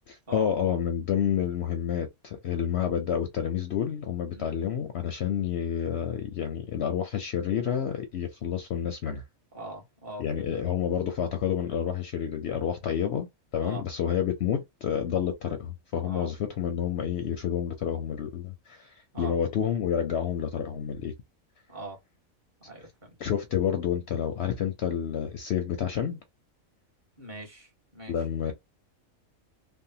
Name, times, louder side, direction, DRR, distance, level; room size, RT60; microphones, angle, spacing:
voice 1, 0.1-9.2 10.2-21.1 23.2-26.2 28.1-28.5, left 9 dB, 60° left, 0.8 m, -29 dB
voice 2, 9.5-10.5 13.6-13.8 16.0-16.3 19.1-19.4 21.7-22.0 22.6-23.1 27.2-28.5, right 1 dB, 35° right, 1.5 m, -42 dB
3.4 x 2.1 x 2.7 m
omnidirectional pair, 1.5 m